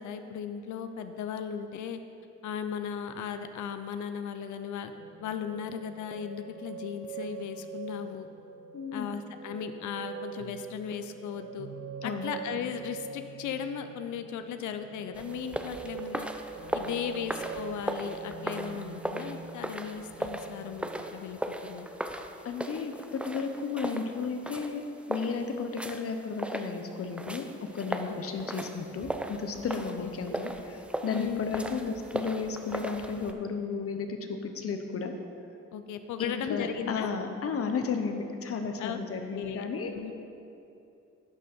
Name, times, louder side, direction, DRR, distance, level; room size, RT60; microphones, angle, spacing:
voice 1, 0.0-2.0 2.4-4.9 5.2-8.3 8.9-11.7 12.0-16.3 16.7-21.9 28.0-28.5 30.0-30.1 31.1-31.4 35.7-37.1 38.8-39.0 39.3-40.1, left 8 dB, 75° left, 9 dB, 0.6 m, -37 dB
sound 1, 5.0-21.2 21.6-22.3, right 6 dB, 55° right, 0.5 m, -44 dB
voice 2, 8.7-9.1 12.0-12.3 22.4-27.5 27.7-35.1 36.2-39.9, left 5 dB, 50° left, 6 dB, 0.9 m, -33 dB
sound 2, 15.1-33.3, right 1 dB, 5° right, 0.5 m, -38 dB
11.0 x 6.2 x 4.4 m, 2.7 s
cardioid pair, 90°, 30 cm